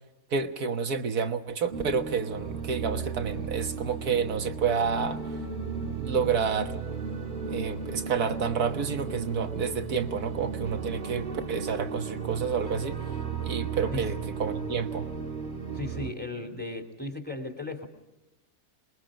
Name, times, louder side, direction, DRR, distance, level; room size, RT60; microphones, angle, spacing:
voice 1, 0.3-5.2 6.0-6.8 7.5-13.0 13.4-15.1, right 6 dB, 90° right, 7 dB, 1.9 m, -29 dB
sound 1, 1.7-16.1, right 5 dB, 35° right, 1.8 m, -35 dB
voice 2, 15.7-17.9, left 2 dB, 5° left, 5 dB, 3.0 m, -36 dB
27.0 x 22.0 x 5.1 m, 1.0 s
omnidirectional pair, 1.6 m